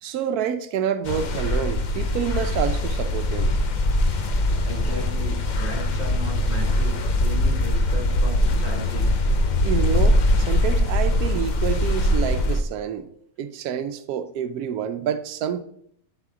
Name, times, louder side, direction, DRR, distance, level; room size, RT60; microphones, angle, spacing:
voice 1, 0.0-3.5 9.6-13.1 13.4-15.6, right 8 dB, 90° right, 1.1 m, -28 dB
sound 1, 1.0-12.6, left 1 dB, 60° left, 0.4 m, -22 dB
voice 2, 4.6-9.1, equal, 10° left, 2.3 m, -35 dB
10.5 x 4.1 x 3.6 m
omnidirectional pair, 1.6 m